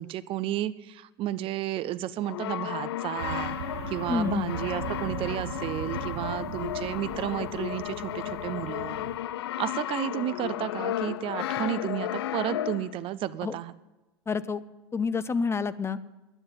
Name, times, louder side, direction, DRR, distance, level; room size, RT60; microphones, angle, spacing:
voice 1, 0.0-3.6 3.9-9.0 9.6-13.7, right 12 dB, 40° right, 15 dB, 0.6 m, -32 dB
Brass instrument, 2.2-13.0, left 13 dB, 70° left, 0.4 m, -34 dB
sound 1, 3.2-9.2, right 8 dB, 75° right, 0.9 m, -39 dB
voice 2, 4.1-4.5 13.4-13.6 14.3-14.6 14.9-16.0, left 5 dB, 20° left, 15 dB, 0.6 m, -28 dB
10.0 x 10.0 x 9.7 m, 1.1 s
figure-of-eight pair, 75°, 14 cm